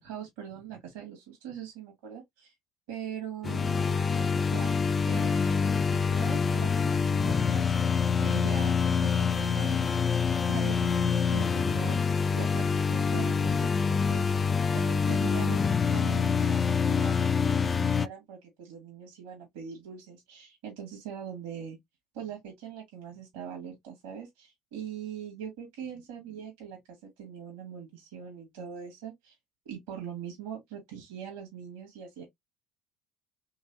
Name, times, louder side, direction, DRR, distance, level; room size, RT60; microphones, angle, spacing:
voice 1, 0.0-2.5 2.9-4.8 5.1-7.8 8.2-10.1 10.5-21.8 22.1-29.3 29.7-32.2, right 8 dB, 75° right, 1.8 m, -42 dB
sound 1, 3.4-18.1, left 6 dB, 35° left, 0.4 m, -26 dB
3.9 x 3.3 x 2.6 m
hypercardioid pair, 70°, 0 cm